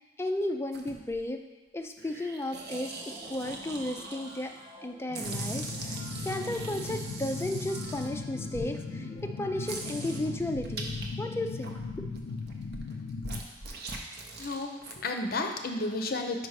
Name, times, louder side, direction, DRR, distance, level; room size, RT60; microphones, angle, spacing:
voice 1, 0.2-1.4 1.7-4.5 4.8-12.1, left 1 dB, 15° left, 5 dB, 0.4 m, -34 dB
sound 1, 0.7-1.2 2.0-4.7 5.1-8.7 9.2-9.3 9.6-11.1 11.4-15.0, right 3 dB, 60° right, 0.8 m, -41 dB
sound 2, 2.6-10.4, equal, 25° right, 1.5 m, -49 dB
sound 3, 5.2-13.4, left 4 dB, 85° left, 0.4 m, -38 dB
voice 2, 14.4-16.5, left 2 dB, 50° left, 5 dB, 0.6 m, -32 dB
5.3 x 5.0 x 4.7 m, 1.1 s
head